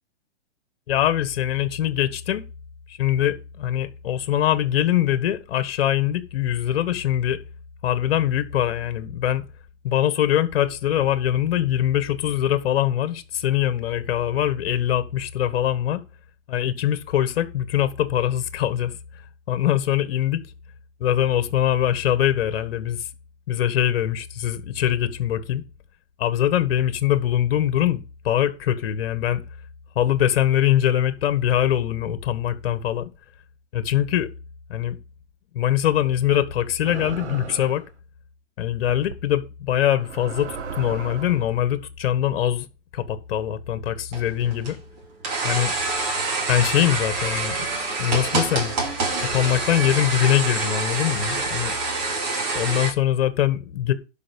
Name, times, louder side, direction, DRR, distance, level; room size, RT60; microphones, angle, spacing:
voice 1, 0.9-2.4 2.9-7.4 7.8-9.4 9.8-16.0 16.5-19.0 19.5-20.4 21.0-23.1 23.5-25.6 26.2-29.4 29.9-33.1 33.7-34.3 34.7-35.0 35.5-37.8 38.6-42.7 42.9-44.8 45.4-45.7 46.5-47.7 48.0-48.7 49.3-51.7 52.5-53.9, left 11 dB, 55° left, 1.7 m, -23 dB
sound 1, 36.8-37.9 38.9-39.1 39.9-41.5, right 6 dB, 70° right, 1.6 m, -35 dB
sound 2, 44.1-52.9, right 3 dB, 35° right, 2.8 m, -26 dB
11.5 x 5.5 x 5.4 m
hypercardioid pair, 155°, 36 cm